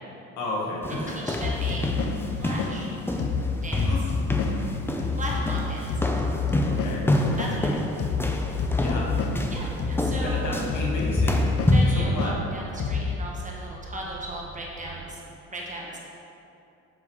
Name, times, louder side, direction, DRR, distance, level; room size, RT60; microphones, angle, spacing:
voice 1, 0.4-1.1 3.8-4.1 5.2-5.5 5.8-5.9 6.7-7.1 8.8-9.1 10.2-11.4 11.9-12.4, left 2 dB, 80° left, -3 dB, 1.4 m, -32 dB
sound 1, 0.8-12.0, left 1 dB, 10° left, 0.6 m, -28 dB
voice 2, 0.9-1.9 2.4-2.9 3.5-3.8 5.1-5.8 7.4-7.8 9.5-10.6 11.7-15.2 15.5-16.0, right 1 dB, 25° right, -4 dB, 1.6 m, -36 dB
sound 2, 1.4-13.3, left 5 dB, 50° left, 0.6 m, -29 dB
sound 3, 13.7-15.0, right 5 dB, 50° right, 0.9 m, -45 dB
7.2 x 7.2 x 3.1 m, 2.7 s
cardioid pair, 90°, 30 cm